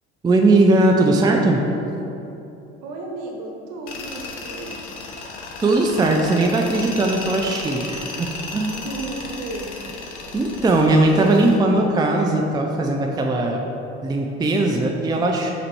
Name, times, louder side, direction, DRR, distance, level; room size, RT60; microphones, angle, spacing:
voice 1, 0.2-1.7 5.6-8.7 10.3-13.6 14.0-15.5, right 2 dB, 10° right, 2 dB, 0.5 m, -19 dB
voice 2, 2.8-4.8 8.7-9.7, right 2 dB, 60° right, 0 dB, 1.1 m, -33 dB
Tools, 3.9-11.6, left 3 dB, 85° left, 0.6 m, -34 dB
5.0 x 4.2 x 4.6 m, 2.9 s
figure-of-eight pair, 60°, 33 cm